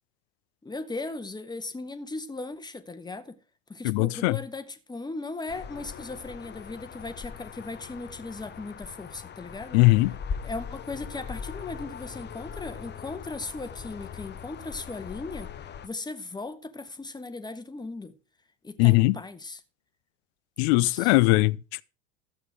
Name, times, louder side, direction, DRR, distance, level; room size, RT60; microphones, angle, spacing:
voice 1, 0.6-3.4 3.7-9.8 10.4-18.1 18.6-19.6 20.7-21.1, left 3 dB, 10° left, 1.4 m, -38 dB
voice 2, 3.8-4.4 9.7-10.1 18.8-19.2 20.6-21.8, left 22 dB, 55° left, 0.7 m, -20 dB
sound 1, 5.5-15.9, left 7 dB, 25° left, 1.0 m, -40 dB
13.5 x 8.2 x 4.8 m
figure-of-eight pair, 75°, 40 cm